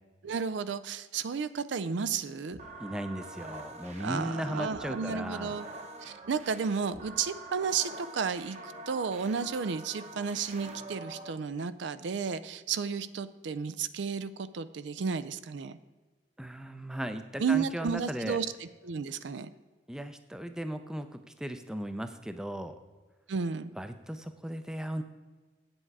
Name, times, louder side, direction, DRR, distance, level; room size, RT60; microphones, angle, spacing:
voice 1, 0.2-2.6 4.0-5.7 6.0-15.8 17.4-19.5 23.3-23.7, right 6 dB, 80° right, 13 dB, 0.4 m, -33 dB
sound 1, 2.5-11.3, right 2 dB, 35° right, 0.9 m, -45 dB
voice 2, 2.8-5.6 16.4-18.4 19.9-22.8 23.8-25.0, equal, 5° right, 9 dB, 0.4 m, -36 dB
8.6 x 7.9 x 4.7 m, 1.3 s
head